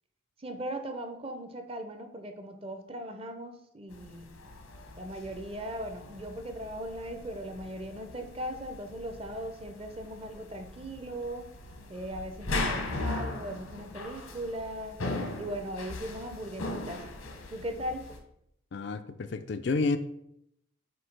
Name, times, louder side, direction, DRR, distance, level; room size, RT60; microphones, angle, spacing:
voice 1, 0.4-4.3 5.0-11.5 11.9-15.0 15.4-17.0 17.5-18.2, right 1 dB, 25° right, 6 dB, 0.7 m, -38 dB
sound 1, 3.9-18.2, left 2 dB, 85° left, 1.2 m, -39 dB
voice 2, 18.7-20.0, left 3 dB, 55° left, 9 dB, 0.4 m, -30 dB
7.8 x 2.8 x 6.0 m, 0.76 s
head